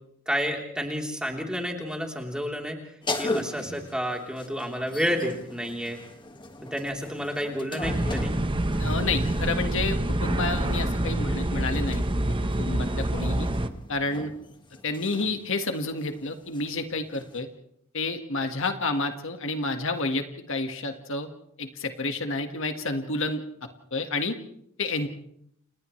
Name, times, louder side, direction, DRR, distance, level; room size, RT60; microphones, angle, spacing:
voice 1, 0.3-2.8 3.2-6.0 6.6-8.3, equal, 5° right, 1 dB, 3.6 m, -30 dB
sound 1, 3.0-9.6 10.6-17.4, left 2 dB, 25° left, 1.9 m, -39 dB
sound 2, 7.8-13.7, right 1 dB, 25° right, 1.1 m, -26 dB
voice 2, 8.8-13.5 13.9-14.3 14.8-17.5 17.9-21.3 21.6-23.4 23.9-24.4 24.8-25.1, left 3 dB, 65° left, 6 dB, 1.8 m, -30 dB
30.0 x 29.0 x 3.3 m, 0.70 s
head